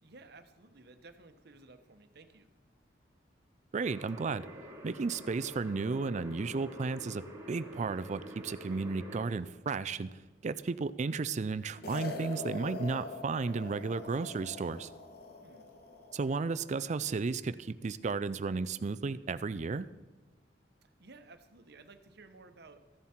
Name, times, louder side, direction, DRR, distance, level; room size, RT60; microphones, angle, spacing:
voice 1, 0.0-2.5 15.4-15.7 20.8-22.8, right 3 dB, 65° right, 9 dB, 1.1 m, -55 dB
voice 2, 3.7-4.5 4.8-10.1 10.4-14.9 16.1-19.9, right 4 dB, 40° right, 14 dB, 0.4 m, -34 dB
sound 1, 3.8-9.3, left 1 dB, 20° right, 2.3 m, -47 dB
sound 2, 11.8-16.3, left 3 dB, 60° left, 1.4 m, -43 dB
14.5 x 11.0 x 4.4 m, 1.2 s
head